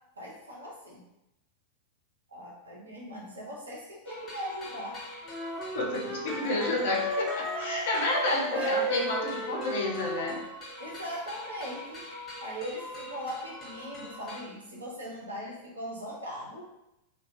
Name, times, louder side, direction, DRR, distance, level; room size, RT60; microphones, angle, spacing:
voice 1, 0.2-1.1 2.3-5.0 8.5-8.9 10.8-12.1 12.4-16.7, equal, 75° right, -4 dB, 0.6 m, -39 dB
sound 1, 4.1-14.4, left 2 dB, 20° left, 0.8 m, -43 dB
sound 2, 5.3-10.5, right 1 dB, ahead, 0.4 m, -33 dB
voice 2, 5.7-10.4, left 2 dB, 55° left, 0 dB, 0.5 m, -30 dB
2.3 x 2.2 x 2.5 m, 0.90 s
figure-of-eight pair, 90°, 0 cm